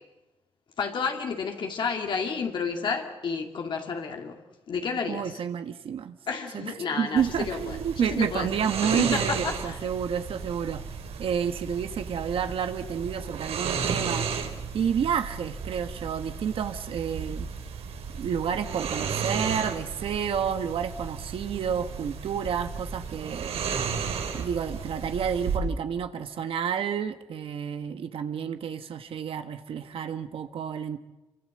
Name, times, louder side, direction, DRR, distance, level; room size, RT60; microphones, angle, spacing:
voice 1, 0.8-4.4 4.7-5.4 6.3-8.5 8.8-9.8, left 5 dB, 50° left, 2.3 m, -31 dB
voice 2, 5.1-6.2 6.5-6.6 6.9-10.8 11.2-14.3 14.7-17.5 18.2-23.6 24.3-31.0, right 7 dB, 65° right, 1.3 m, -30 dB
sound 1, 7.2-25.6, right 6 dB, 80° right, 4.2 m, -34 dB
27.0 x 24.5 x 7.7 m
wide cardioid pair, 170°, 10 cm